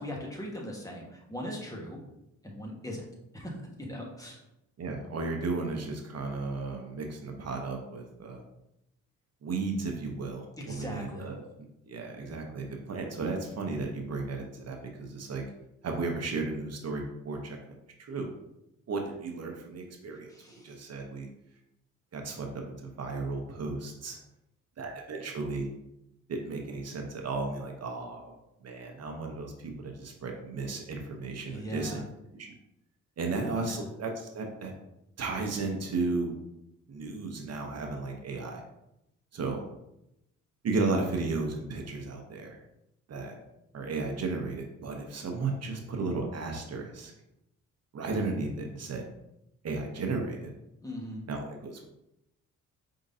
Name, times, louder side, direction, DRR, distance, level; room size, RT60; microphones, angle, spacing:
voice 1, 0.0-2.0 2.4-3.0 3.3-4.4 10.6-11.3 20.3-20.8 31.5-32.0 33.6-33.8 50.8-51.2, equal, 10° left, -1 dB, 1.4 m, -39 dB
voice 2, 4.8-8.4 9.4-11.4 11.8-15.4 15.8-18.3 18.9-21.3 22.1-22.5 22.8-24.2 24.8-25.7 26.3-28.3 28.6-32.0 32.4-32.5 33.2-34.7 35.2-36.3 36.9-38.6 39.3-39.6 40.6-42.6 43.1-43.4 43.7-47.1 47.9-49.1 49.6-50.5 51.3-51.8, right 3 dB, 50° right, 2 dB, 0.9 m, -34 dB
5.0 x 3.8 x 2.7 m, 0.85 s
supercardioid pair, 70°, 34 cm